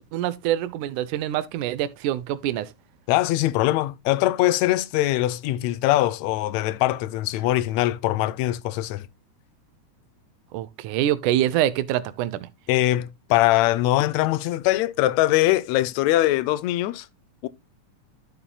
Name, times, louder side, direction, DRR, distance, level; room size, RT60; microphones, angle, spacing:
voice 1, 0.0-2.7 10.5-12.5, right 12 dB, 90° right, 2.2 m, -25 dB
voice 2, 3.1-9.1 12.7-17.1 17.4-17.5, left 15 dB, 75° left, 1.7 m, -22 dB
12.0 x 7.0 x 2.2 m
omnidirectional pair, 3.4 m